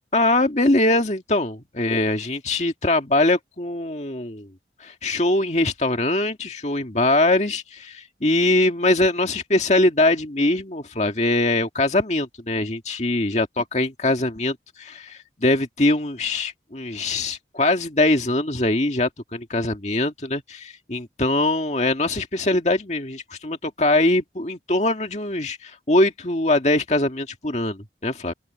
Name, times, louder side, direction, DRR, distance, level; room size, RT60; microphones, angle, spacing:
voice 1, 0.1-4.5 4.8-28.3, left 2 dB, 40° left, 2.0 m, -22 dB
open air
head